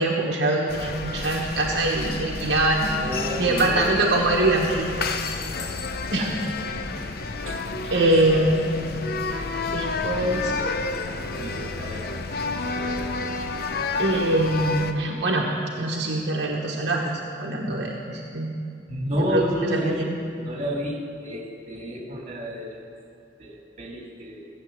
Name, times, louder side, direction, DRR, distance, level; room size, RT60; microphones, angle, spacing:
voice 1, 0.0-3.0 3.4-5.1 6.1-6.3 7.9-8.7 9.7-10.5 14.0-15.5 15.8-18.6 19.3-20.1, right 2 dB, 65° right, -2 dB, 1.2 m, -23 dB
sound 1, 0.7-14.9, left 3 dB, 55° left, 0.7 m, -30 dB
voice 2, 3.0-3.9 6.2-6.5 7.5-8.4 10.2-12.2 12.6-13.3 18.9-20.1 20.4-22.8 23.4-24.5, equal, 35° right, -1 dB, 2.5 m, -31 dB
16.0 x 8.2 x 7.7 m, 2.5 s
head